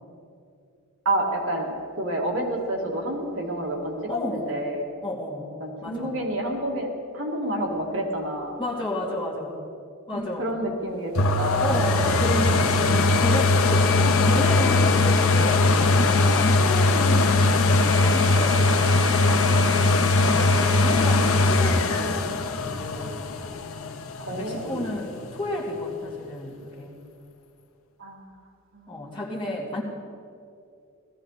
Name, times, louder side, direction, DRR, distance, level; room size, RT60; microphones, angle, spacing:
voice 1, 1.1-4.8 5.6-6.9 7.1-8.6 10.1-11.9 19.6-19.8 24.3-24.9 28.0-28.3 28.7-29.1, right 1 dB, 60° right, -1 dB, 2.1 m, -29 dB
voice 2, 4.1-4.5 5.0-5.5 5.8-6.1 8.6-9.6 10.1-10.5 11.6-18.7 20.2-23.2 24.3-27.0 28.9-29.8, left 1 dB, 20° left, -5 dB, 2.4 m, -31 dB
sound 1, 11.1-24.8 25.4-25.5, left 3 dB, 70° left, 0.8 m, -20 dB
18.0 x 14.5 x 4.1 m, 2.4 s
head